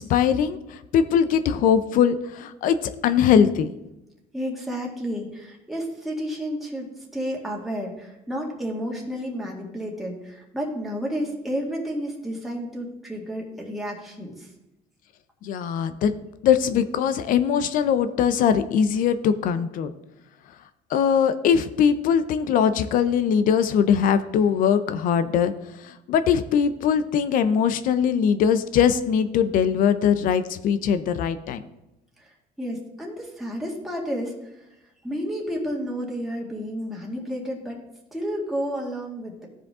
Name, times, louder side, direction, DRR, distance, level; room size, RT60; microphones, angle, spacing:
voice 1, 0.0-3.7 15.4-16.1 16.4-19.9 20.9-25.5 25.8-31.6, left 8 dB, 65° left, 11 dB, 0.6 m, -21 dB
voice 2, 4.3-6.9 7.1-14.5 32.2-34.7 35.0-37.8 38.1-39.5, equal, ahead, -2 dB, 1.9 m, -31 dB
14.5 x 5.1 x 3.7 m, 0.94 s
cardioid pair, 105°, 15 cm